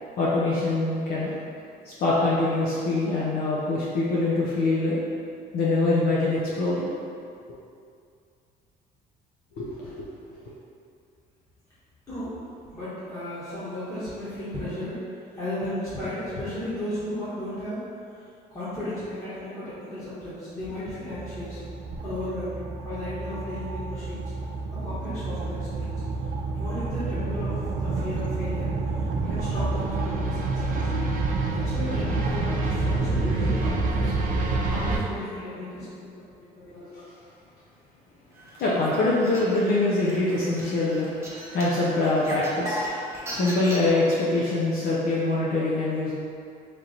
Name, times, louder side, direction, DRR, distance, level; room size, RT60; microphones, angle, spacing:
voice 1, 0.2-1.3 1.8-5.0 5.5-7.0 9.6-9.9 36.7-37.1 38.6-41.1 41.5-42.8 43.3-46.1, left 2 dB, 65° left, -7 dB, 0.6 m, -24 dB
voice 2, 12.1-12.4 12.7-15.0 15.3-17.8 18.1-18.2 18.5-21.6 22.0-24.2 24.7-25.9 26.5-28.7 29.2-30.9 31.5-34.1 34.7-36.3 36.7-36.8, left 1 dB, 20° left, -13 dB, 1.2 m, -34 dB
sound 1, 21.0-35.0, right 3 dB, 50° right, 0.5 m, -28 dB
sound 2, 38.4-43.9, equal, 15° right, 0.9 m, -36 dB
3.2 x 2.9 x 3.9 m, 2.5 s
cardioid pair, 110°, 17 cm